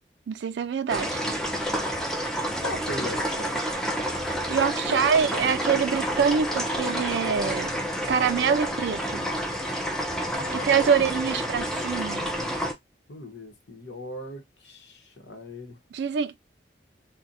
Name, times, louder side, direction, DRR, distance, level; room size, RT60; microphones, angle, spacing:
voice 1, 0.3-1.2 4.5-7.7 8.1-9.3 10.5-12.3 15.9-16.4, right 6 dB, 70° right, 0.3 m, -25 dB
sound 1, 0.9-12.7, equal, 5° left, 0.4 m, -29 dB
voice 2, 2.6-3.7 4.8-5.3 10.4-11.0 13.1-15.8, left 1 dB, 80° left, 0.9 m, -39 dB
2.4 x 2.1 x 3.9 m
head